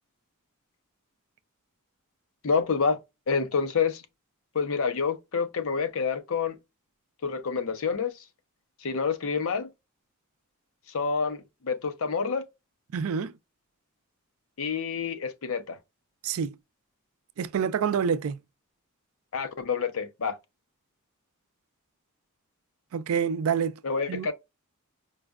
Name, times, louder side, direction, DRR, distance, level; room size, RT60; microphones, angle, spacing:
voice 1, 2.4-3.0 3.3-4.0 4.5-6.6 7.2-8.1 8.8-9.7 10.9-12.4 14.6-15.8 19.3-20.3 23.8-24.3, left 5 dB, 65° left, 0.6 m, -28 dB
voice 2, 12.9-13.3 16.2-16.5 17.4-18.4 22.9-23.8 24.1-24.3, right 7 dB, 65° right, 0.4 m, -27 dB
4.8 x 2.2 x 2.3 m
head